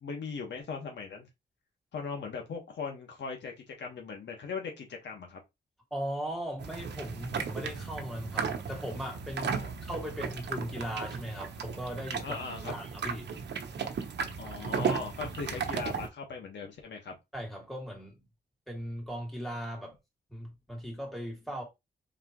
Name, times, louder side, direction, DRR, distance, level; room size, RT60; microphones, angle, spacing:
voice 1, 0.0-1.3 1.9-5.4 9.4-9.7 12.2-12.7 14.4-17.2, left 5 dB, 80° left, 1.6 m, -39 dB
voice 2, 5.9-9.6 9.8-13.4 17.3-18.2 18.7-20.0 20.3-21.6, equal, ahead, 2.4 m, -38 dB
sound 1, 6.6-16.1, right 6 dB, 75° right, 0.9 m, -35 dB
4.7 x 3.6 x 3.1 m
wide cardioid pair, 110°, 18 cm